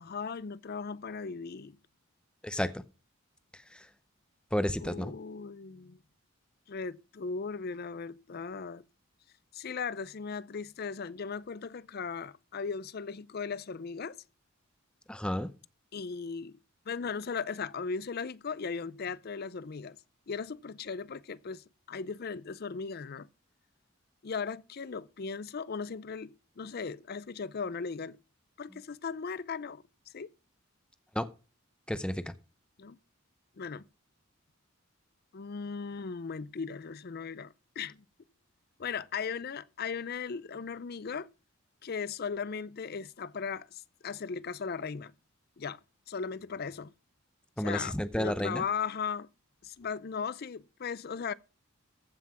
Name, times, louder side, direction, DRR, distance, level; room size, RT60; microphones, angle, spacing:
voice 1, 0.0-1.8 4.8-6.0 6.7-8.8 9.5-14.2 15.9-16.6 16.9-20.0 20.3-23.3 24.2-28.2 28.6-29.8 30.1-30.3 32.8-33.0 33.6-33.9 35.3-38.0 38.8-41.3 41.8-45.1 45.6-45.8 46.1-46.9 47.6-49.3 49.6-51.3, left 5 dB, 50° left, 0.5 m, -37 dB
voice 2, 2.4-2.8 3.7-3.9 4.5-5.1 15.1-15.5 31.1-31.3 31.9-32.2 47.6-48.6, equal, 5° left, 0.6 m, -31 dB
15.0 x 5.8 x 5.9 m
head